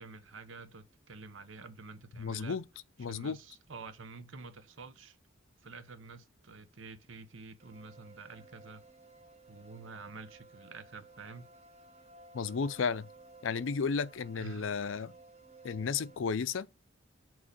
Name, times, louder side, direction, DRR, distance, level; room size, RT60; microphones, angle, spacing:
voice 1, 0.0-2.6 3.1-5.2 5.6-8.8 9.5-11.5 14.3-14.7, right 4 dB, 80° right, 1.0 m, -48 dB
voice 2, 2.2-2.6 3.0-3.4 12.3-13.1 13.4-15.1 15.6-16.7, left 5 dB, 85° left, 0.5 m, -33 dB
sound 1, 7.6-16.2, right 3 dB, 35° right, 1.0 m, -56 dB
6.2 x 3.1 x 5.3 m
head